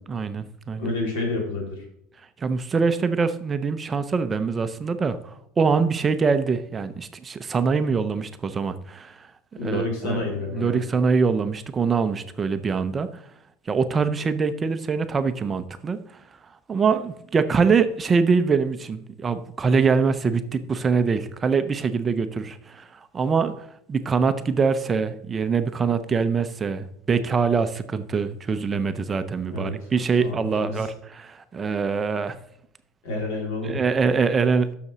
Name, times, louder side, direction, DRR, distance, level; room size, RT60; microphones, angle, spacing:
voice 1, 0.1-0.9 2.4-9.2 9.6-10.2 10.5-13.1 13.7-16.0 16.7-22.9 23.1-23.5 23.9-32.4 33.6-34.7, right 5 dB, 20° right, 10 dB, 0.5 m, -24 dB
voice 2, 0.8-1.8 9.6-10.8 29.5-29.8 30.2-30.9 33.0-33.8, left 2 dB, 80° left, 0 dB, 3.7 m, -29 dB
6.9 x 6.6 x 6.1 m, 0.72 s
cardioid pair, 155°, 0 cm